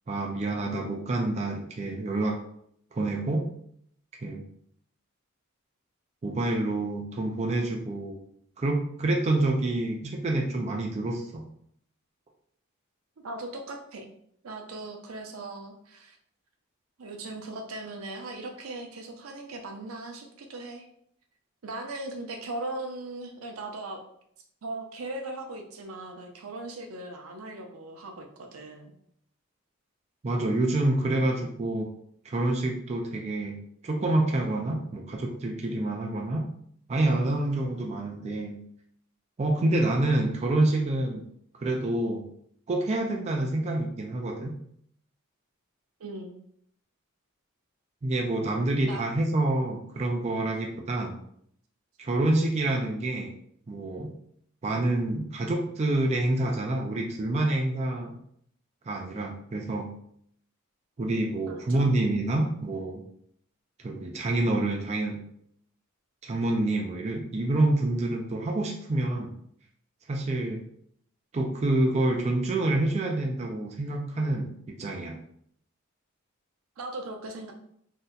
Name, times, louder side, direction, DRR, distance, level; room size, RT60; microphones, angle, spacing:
voice 1, 0.1-2.4 2.9-3.4 4.2-4.4 6.2-8.2 8.6-11.4 30.2-31.9 32.2-33.6 33.8-36.5 36.9-38.6 39.4-41.2 41.6-42.2 42.7-44.5 48.0-51.2 52.0-53.3 53.7-54.1 54.6-58.2 58.9-59.9 61.0-63.0 63.8-65.2 66.2-69.3 70.1-70.6 71.3-75.2, right 2 dB, 30° right, 1 dB, 0.3 m, -27 dB
voice 2, 13.2-14.1 14.4-16.2 17.0-20.9 21.6-24.0 24.6-28.9 46.0-46.3 48.8-49.1 61.4-61.9 76.8-77.5, right 2 dB, 80° right, 4 dB, 0.5 m, -38 dB
2.7 x 2.1 x 3.7 m, 0.68 s
head